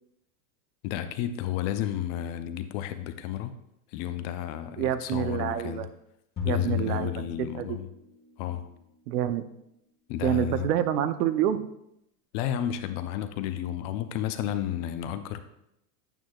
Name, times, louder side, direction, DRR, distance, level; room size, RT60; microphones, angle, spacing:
voice 1, 0.8-3.5 3.9-5.9 6.5-7.9 8.4-8.6 10.1-10.7 12.3-15.4, left 11 dB, 45° left, 10 dB, 0.6 m, -32 dB
voice 2, 4.8-5.9 6.4-7.8 9.1-9.4 10.2-11.6, right 11 dB, 75° right, 11 dB, 0.8 m, -27 dB
sound 1, 6.4-8.2, left 9 dB, 20° left, 1.2 m, -33 dB
9.1 x 7.7 x 2.3 m, 0.81 s
supercardioid pair, 140°, 47 cm